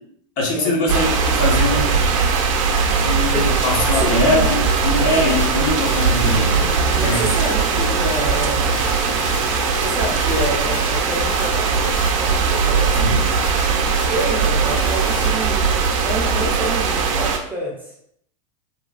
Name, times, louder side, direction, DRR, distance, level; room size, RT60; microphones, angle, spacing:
voice 1, 0.4-2.0 3.0-6.7 7.0-7.2 13.0-13.2, left 2 dB, 45° left, -1 dB, 0.9 m, -22 dB
sound 1, 0.9-17.4, right 5 dB, 70° right, 0.5 m, -19 dB
sound 2, 3.1-15.3, left 6 dB, 65° left, 0.4 m, -36 dB
voice 2, 3.3-4.5 6.8-13.7 14.1-17.9, right 1 dB, 10° right, -4 dB, 0.4 m, -28 dB
3.0 x 2.2 x 2.4 m, 0.71 s
supercardioid pair, 145°, 17 cm